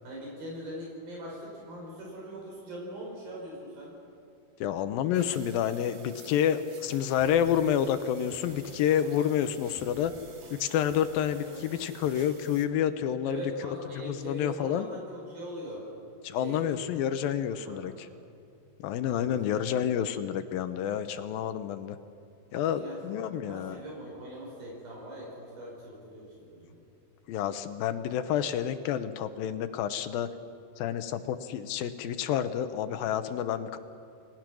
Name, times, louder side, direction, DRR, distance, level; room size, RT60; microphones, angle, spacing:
voice 1, 0.0-3.9 11.5-11.6 13.2-15.8 16.3-16.8 17.6-18.2 19.2-19.6 22.6-26.8, equal, 65° right, -3 dB, 6.8 m, -41 dB
voice 2, 4.6-10.1 10.6-14.9 16.2-17.9 18.8-22.0 22.5-23.8 27.3-30.3 30.8-33.8, left 9 dB, 75° left, 10 dB, 2.4 m, -29 dB
sound 1, 5.1-12.6, right 5 dB, 45° right, 2.0 m, -53 dB
sound 2, 7.2-9.3 9.8-12.3, equal, 85° right, 9.9 m, -53 dB
30.0 x 20.0 x 6.2 m, 2.6 s
omnidirectional pair, 4.6 m